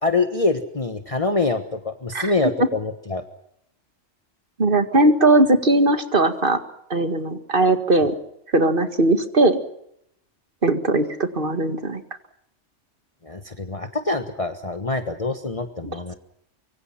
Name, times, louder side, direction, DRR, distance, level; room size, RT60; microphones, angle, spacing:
voice 1, 0.0-3.2 13.2-16.1, left 3 dB, 30° left, 7 dB, 1.4 m, -25 dB
voice 2, 4.6-6.6 6.9-8.1 8.5-9.6 10.6-12.0 15.8-16.0, right 2 dB, 45° right, 9 dB, 2.1 m, -19 dB
25.0 x 24.0 x 5.9 m, 0.75 s
omnidirectional pair, 1.2 m